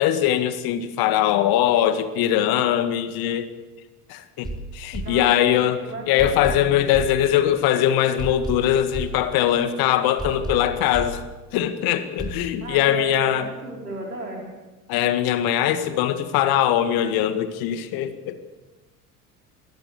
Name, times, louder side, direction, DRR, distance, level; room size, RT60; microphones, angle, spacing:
voice 1, 0.0-3.5 4.1-5.8 6.1-11.2 11.5-13.5 14.9-18.4, left 11 dB, 50° left, 11 dB, 1.9 m, -21 dB
sound 1, 4.4-5.7 6.2-7.7 8.2-9.7 10.2-11.7 12.2-12.5, right 2 dB, 10° right, 4.2 m, -34 dB
voice 2, 5.0-6.3 12.6-14.5, right 2 dB, 85° right, 0 dB, 4.8 m, -35 dB
22.5 x 17.0 x 6.8 m, 1.2 s
figure-of-eight pair, 70°, 46 cm